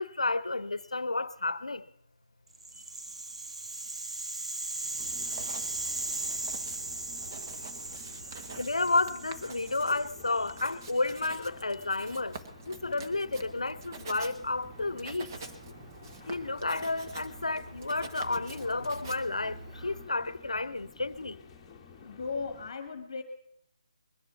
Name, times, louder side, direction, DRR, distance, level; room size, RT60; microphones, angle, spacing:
voice 1, 0.0-1.9 8.6-12.4 12.6-15.4 16.3-21.4, left 3 dB, 75° left, 0.7 m, -31 dB
Rattle (instrument), 2.5-10.7, right 2 dB, 70° right, 1.1 m, -38 dB
Writing, 4.8-20.1, right 4 dB, 35° right, 1.2 m, -47 dB
sound 1, 5.0-22.7, left 5 dB, 15° left, 1.4 m, -52 dB
voice 2, 22.0-23.2, left 4 dB, 45° left, 1.2 m, -36 dB
21.0 x 8.1 x 7.1 m
figure-of-eight pair, 150°, 3 cm